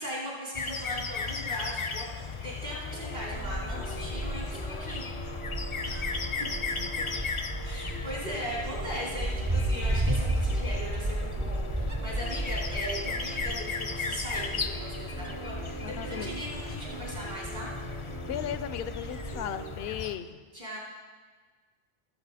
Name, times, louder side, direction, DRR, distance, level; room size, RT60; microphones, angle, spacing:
voice 1, 0.0-2.1 2.4-5.1 5.8-6.0 7.6-17.7 20.5-20.8, equal, 65° right, -6 dB, 4.4 m, -39 dB
sound 1, 0.5-20.2, left 4 dB, 35° left, 0.5 m, -36 dB
sound 2, 2.9-19.8, right 4 dB, 85° right, 1.0 m, -45 dB
Wind, 3.2-19.4, right 1 dB, 25° right, 0.4 m, -34 dB
voice 2, 6.8-7.3 15.8-16.4 18.3-20.4, left 9 dB, 75° left, 13 dB, 0.8 m, -37 dB
19.0 x 8.0 x 4.1 m, 1.5 s
omnidirectional pair, 1.0 m